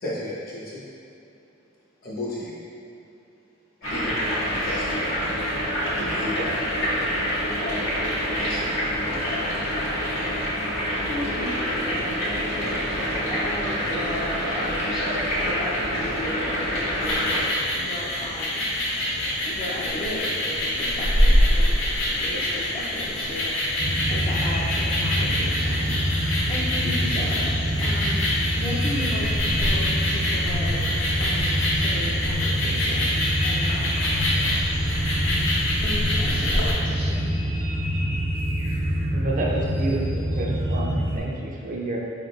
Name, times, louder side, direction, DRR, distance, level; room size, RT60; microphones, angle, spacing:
voice 1, 0.0-0.8 2.0-2.6 3.8-4.2 4.5-5.0 6.2-6.5 8.3-8.7, left 1 dB, 50° left, -7 dB, 1.0 m, -33 dB
sound 1, 3.8-17.4, equal, 85° left, 1.4 m, -26 dB
voice 2, 11.1-18.7 19.4-21.9 22.2-25.9 26.5-28.3 28.6-30.9 31.2-34.2 35.8-37.3, left 1 dB, 30° left, -7 dB, 0.4 m, -35 dB
sound 2, 17.0-36.7, left 1 dB, 65° left, 0.8 m, -25 dB
sound 3, 23.8-41.2, equal, 80° right, 0.8 m, -26 dB
voice 3, 39.1-42.0, right 2 dB, 40° right, -2 dB, 0.4 m, -29 dB
4.4 x 3.7 x 2.3 m, 2.7 s
head